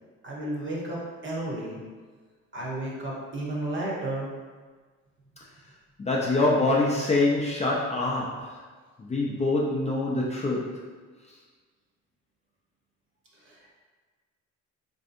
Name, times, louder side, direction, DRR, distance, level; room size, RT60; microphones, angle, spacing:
voice 1, 0.2-1.8 2.5-4.3 13.5-13.7, right 1 dB, 40° right, -4 dB, 0.9 m, -33 dB
voice 2, 6.0-8.6 9.0-10.9, left 2 dB, 25° left, -4 dB, 0.4 m, -25 dB
3.2 x 2.7 x 2.5 m, 1.4 s
cardioid pair, 90°, 30 cm